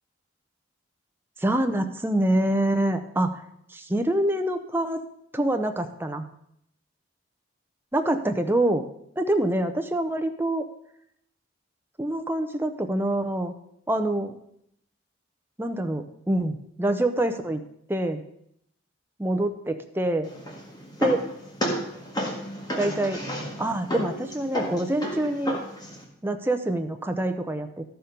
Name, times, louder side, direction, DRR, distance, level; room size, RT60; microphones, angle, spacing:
voice 1, 1.4-3.4 3.7-5.0 5.3-6.2 7.9-8.8 9.2-10.7 12.0-13.5 13.9-14.4 15.6-17.6 17.9-18.2 19.2-20.3 21.0-21.2 22.8-23.2 23.6-25.6 26.2-27.8, right 1 dB, 10° right, 6 dB, 0.7 m, -25 dB
sound 1, 20.2-26.0, equal, 20° left, 1.7 m, -32 dB
13.0 x 6.9 x 5.2 m, 0.73 s
head